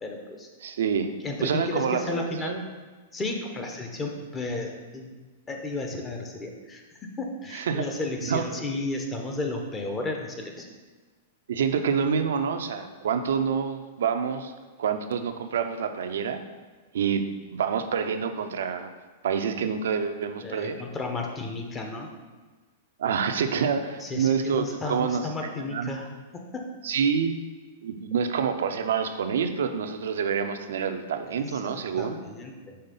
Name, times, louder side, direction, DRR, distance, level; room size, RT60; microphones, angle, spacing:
voice 1, 0.0-0.5 1.2-2.6 3.1-5.1 5.5-10.7 20.4-22.1 24.0-26.1 26.3-26.7 31.5-32.8, left 2 dB, 20° left, 2 dB, 0.9 m, -33 dB
voice 2, 0.6-1.1 1.4-2.7 7.5-7.9 8.3-8.5 11.5-14.5 14.8-16.4 16.9-17.2 17.5-18.9 19.2-20.8 23.0-26.1 26.8-27.4 27.8-32.2, right 6 dB, 75° right, 8 dB, 0.5 m, -27 dB
5.6 x 3.6 x 5.3 m, 1.3 s
hypercardioid pair, 120°, 0 cm